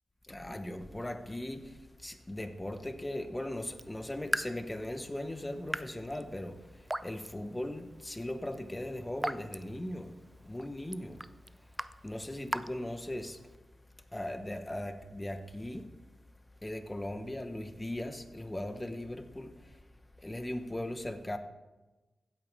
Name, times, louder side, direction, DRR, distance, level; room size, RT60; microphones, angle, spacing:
voice 1, 0.2-11.2 12.0-13.4 14.1-15.9 16.6-19.8 20.2-21.4, left 1 dB, 15° left, 0.8 m, -39 dB
Raindrop / Drip, 3.7-13.6, right 1 dB, 10° right, 0.3 m, -42 dB
15.5 x 8.6 x 3.2 m
wide cardioid pair, 100°, 0 cm